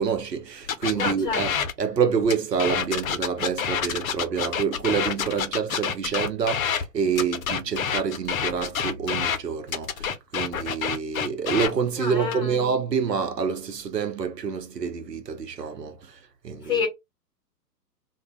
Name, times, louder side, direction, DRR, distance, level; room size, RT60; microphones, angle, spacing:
voice 1, 0.0-1.5 1.8-16.0 16.4-16.8, right 6 dB, 80° right, 0.7 m, -27 dB
sound 1, 0.7-1.7 2.2-6.8 7.2-9.4 9.7-11.7 12.2-12.6, left 7 dB, 55° left, 0.6 m, -27 dB
voice 2, 0.9-1.4 12.0-12.6 16.6-16.9, left 6 dB, 10° left, 0.7 m, -28 dB
2.2 x 2.1 x 3.7 m
figure-of-eight pair, 115°, 49 cm